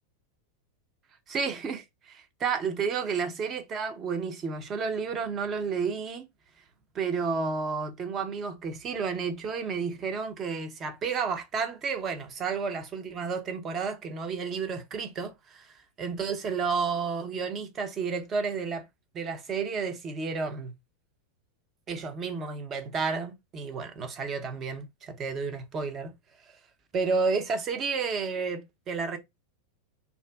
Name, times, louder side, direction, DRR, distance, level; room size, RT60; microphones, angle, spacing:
voice 1, 1.3-6.2 6.9-15.7 16.0-18.8 19.1-20.7 21.9-26.1 26.9-29.2, right 5 dB, 25° right, 0.6 m, -31 dB
2.5 x 2.4 x 2.3 m
figure-of-eight pair, 90°, 0 cm